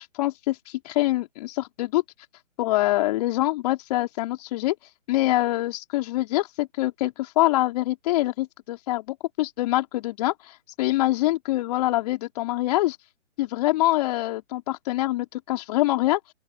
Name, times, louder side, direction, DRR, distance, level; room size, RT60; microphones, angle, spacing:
voice 1, 0.0-2.0 2.6-4.7 5.1-13.0 13.4-16.2, left 17 dB, 30° left, 3.9 m, -25 dB
open air
figure-of-eight pair, 140°, 38 cm